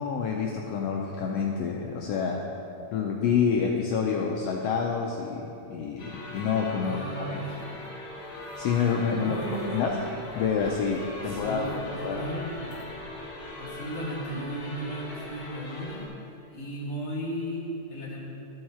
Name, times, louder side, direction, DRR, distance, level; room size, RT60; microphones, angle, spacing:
voice 1, 0.0-2.4 2.9-7.4 8.6-10.0 10.3-12.2, left 6 dB, 90° left, 0 dB, 1.4 m, -28 dB
sound 1, 6.0-16.1, left 1 dB, 45° left, 1.4 m, -40 dB
voice 2, 6.8-7.7 9.1-9.9 11.2-12.7 13.6-16.1 16.5-18.3, right 1 dB, 40° right, -9 dB, 0.9 m, -35 dB
13.5 x 4.7 x 4.3 m, 2.8 s
omnidirectional pair, 3.5 m